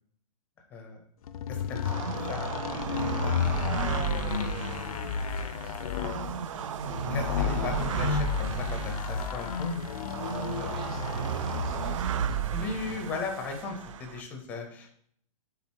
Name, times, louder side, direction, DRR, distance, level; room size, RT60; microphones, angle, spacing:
voice 1, 0.7-1.0 1.5-2.5 3.2-3.6 4.3-4.8 7.1-9.8 12.5-14.9, left 4 dB, 10° left, 4 dB, 0.5 m, -37 dB
sound 1, 1.3-12.1, left 7 dB, 80° left, 0.5 m, -32 dB
sound 2, 1.8-14.2, right 8 dB, 60° right, 0.4 m, -34 dB
sound 3, 3.4-13.6, right 5 dB, 90° right, 1.9 m, -54 dB
voice 2, 10.5-12.5, right 3 dB, 45° right, 0 dB, 1.0 m, -46 dB
7.4 x 3.8 x 4.5 m, 0.65 s
hypercardioid pair, 180°, 18 cm